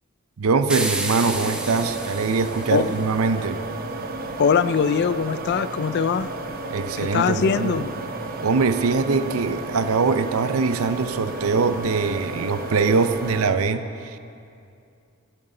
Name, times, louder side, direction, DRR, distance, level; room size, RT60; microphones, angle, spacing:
voice 1, 0.4-3.6 6.7-7.8 8.4-14.2, right 4 dB, 70° right, 11 dB, 0.5 m, -22 dB
sound 1, 0.7-3.1, right 2 dB, 5° right, 0.8 m, -30 dB
sound 2, 1.2-13.5, right 2 dB, 40° right, 0.9 m, -33 dB
voice 2, 4.4-6.3 7.0-7.9, left 6 dB, 50° left, 14 dB, 0.3 m, -22 dB
16.0 x 12.0 x 3.8 m, 2.5 s
head